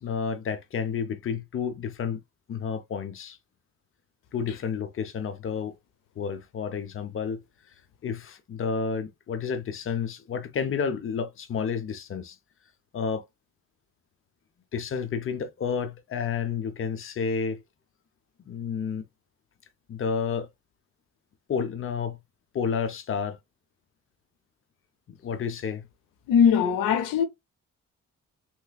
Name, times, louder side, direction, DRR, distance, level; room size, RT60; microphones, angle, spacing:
voice 1, 0.0-2.2 2.5-3.4 4.3-5.7 6.2-7.4 8.0-12.4 12.9-13.2 14.7-17.6 18.5-19.0 19.9-20.5 21.5-22.2 22.5-23.4 25.1-25.9, left 6 dB, 40° left, 0.7 m, -30 dB
voice 2, 26.3-27.2, left 7 dB, 85° left, 0.6 m, -20 dB
3.2 x 3.0 x 2.2 m
cardioid pair, 80°, 32 cm